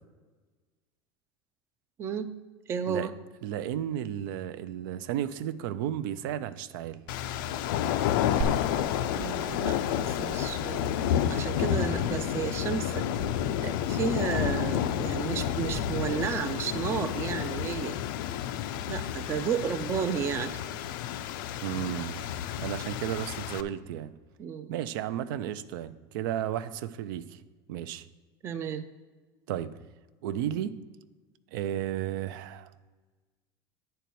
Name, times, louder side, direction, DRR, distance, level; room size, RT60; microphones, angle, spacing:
voice 1, 2.7-3.1 9.1-11.0 11.3-13.0 13.6-18.0 18.9-20.5 24.4-24.7 28.4-28.8, right 7 dB, 25° right, 10 dB, 0.4 m, -32 dB
voice 2, 3.4-7.0 21.6-22.2 22.6-24.1 24.7-27.4 27.7-28.0 29.5-29.7 30.2-30.7 31.5-32.7, right 11 dB, 80° right, 13 dB, 0.5 m, -33 dB
sound 1, 7.1-23.6, left 10 dB, 80° left, 0.5 m, -30 dB
Glass, 8.4-16.4, right 4 dB, 60° right, 0.9 m, -41 dB
9.3 x 4.5 x 6.9 m, 1.3 s
cardioid pair, 165°, 11 cm